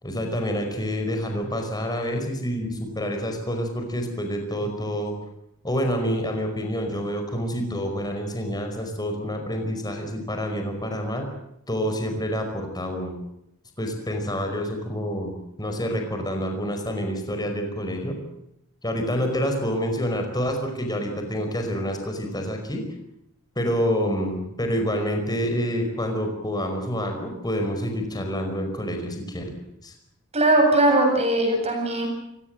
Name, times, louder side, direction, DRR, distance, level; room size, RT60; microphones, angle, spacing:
voice 1, 0.0-5.1 5.6-11.3 11.7-13.1 13.8-15.3 15.6-18.2 18.8-22.8 23.5-29.5 29.8-29.9, equal, 20° left, 4 dB, 5.0 m, -27 dB
voice 2, 30.3-32.1, right 1 dB, 30° right, 3 dB, 7.9 m, -19 dB
29.0 x 17.5 x 7.8 m, 0.80 s
head